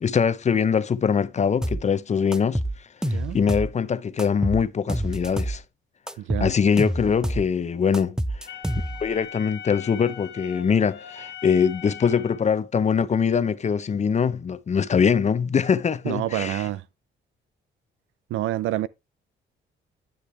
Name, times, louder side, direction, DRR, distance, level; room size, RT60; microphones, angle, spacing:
voice 1, 0.0-2.6 3.3-5.6 6.4-8.5 9.0-16.6, left 6 dB, 35° left, 0.7 m, -23 dB
sound 1, 1.6-1.9 2.3-3.7 4.2-5.6 6.1-7.5 7.9-9.2, right 1 dB, 5° right, 0.5 m, -28 dB
voice 2, 3.0-3.4 6.2-6.5 16.0-16.8 18.3-18.9, right 14 dB, 85° right, 0.5 m, -27 dB
Wind instrument woodwind instrument, 8.5-12.6, left 8 dB, 65° left, 2.0 m, -40 dB
10.0 x 6.2 x 3.3 m
cardioid pair, 90°, 20 cm